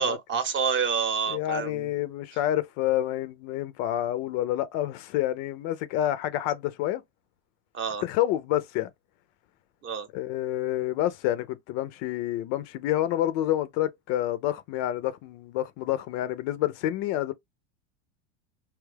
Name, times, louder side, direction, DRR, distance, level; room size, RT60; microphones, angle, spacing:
voice 1, 0.0-1.9 7.7-8.0 9.8-10.1, right 6 dB, 30° right, 0.8 m, -28 dB
voice 2, 1.3-7.0 8.0-8.9 10.1-17.3, left 13 dB, 45° left, 0.5 m, -28 dB
2.9 x 2.3 x 3.3 m
hypercardioid pair, 110°, 36 cm